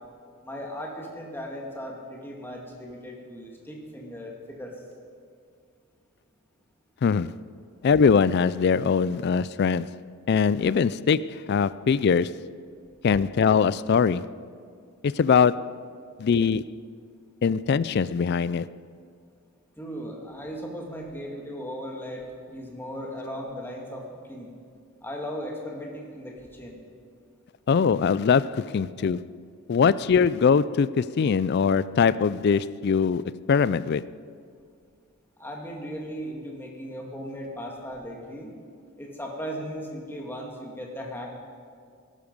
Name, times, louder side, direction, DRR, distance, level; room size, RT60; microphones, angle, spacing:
voice 1, 0.4-4.7 19.8-24.5 25.0-26.8 35.4-38.5 39.0-41.3, equal, 10° left, 1.9 m, -37 dB
voice 2, 7.0-7.4 7.8-10.0 10.3-12.4 13.0-14.3 15.0-15.8 16.2-16.7 17.4-18.7 27.7-29.2 29.7-34.1, left 6 dB, 45° left, 0.3 m, -22 dB
18.0 x 11.5 x 5.3 m
head